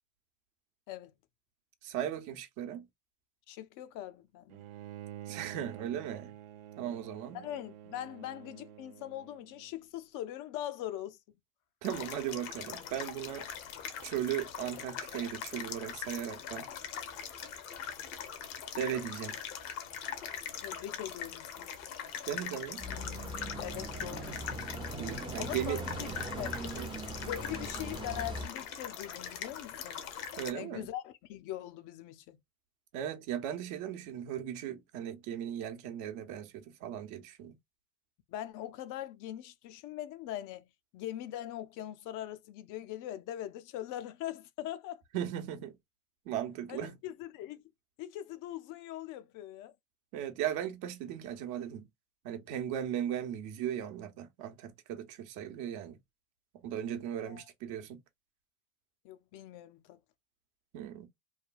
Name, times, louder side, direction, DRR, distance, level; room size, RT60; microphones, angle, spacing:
voice 1, 1.8-2.9 5.3-6.3 6.8-7.4 11.8-13.5 14.0-16.7 18.8-19.4 22.3-22.8 25.0-25.8 26.7-26.9 30.4-30.9 32.9-37.6 45.1-45.7 46.2-47.0 50.1-51.9 52.2-56.0 56.5-58.0 60.7-61.1, right 10 dB, 65° right, 0.9 m, -37 dB
voice 2, 3.5-4.6 7.3-11.2 20.6-21.8 23.6-24.4 25.4-26.6 27.1-30.0 30.5-32.4 38.3-40.7 40.9-45.0 46.7-47.6 48.0-49.7 57.2-57.4 59.0-60.0, left 12 dB, 50° left, 0.5 m, -42 dB
Bowed string instrument, 4.5-9.7, right 12 dB, 85° right, 0.5 m, -48 dB
sound 1, 11.8-30.5, left 8 dB, 70° left, 1.0 m, -42 dB
sound 2, 22.8-28.5, right 1 dB, 10° right, 0.6 m, -40 dB
3.2 x 2.2 x 2.4 m
supercardioid pair, 95°, 40 cm